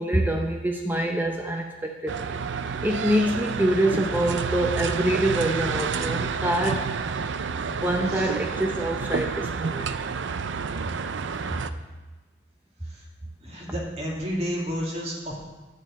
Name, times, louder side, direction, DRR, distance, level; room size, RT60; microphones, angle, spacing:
voice 1, 0.0-6.9 7.7-10.0, right 1 dB, 10° right, 2 dB, 0.6 m, -26 dB
sound 1, 2.1-11.7, right 5 dB, 70° right, 0.5 m, -29 dB
voice 2, 13.4-15.5, equal, 35° right, -2 dB, 2.3 m, -31 dB
10.5 x 5.4 x 8.4 m, 1.2 s
head